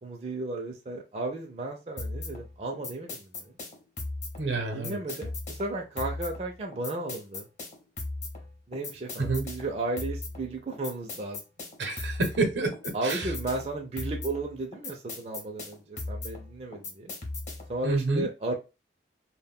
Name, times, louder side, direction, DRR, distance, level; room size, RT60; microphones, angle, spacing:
voice 1, 0.0-3.6 4.5-7.5 8.7-11.4 12.9-17.1 17.7-18.5, right 2 dB, 35° right, 0.4 m, -34 dB
sound 1, 2.0-17.8, left 2 dB, 40° left, 0.7 m, -38 dB
voice 2, 4.4-5.0 9.2-9.4 11.8-13.3 17.8-18.3, right 3 dB, 75° right, 0.7 m, -28 dB
2.1 x 2.1 x 3.5 m
head